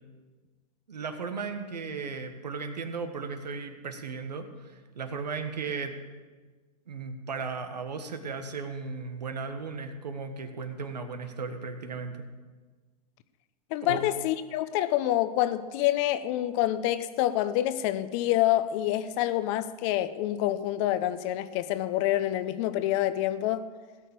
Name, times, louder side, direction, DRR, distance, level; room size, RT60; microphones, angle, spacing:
voice 1, 0.9-6.0 6.9-12.2 13.8-14.0, right 5 dB, 85° right, 1.6 m, -36 dB
voice 2, 13.7-23.6, left 13 dB, 50° left, 0.9 m, -27 dB
16.5 x 6.5 x 7.7 m
hypercardioid pair, 110°, 21 cm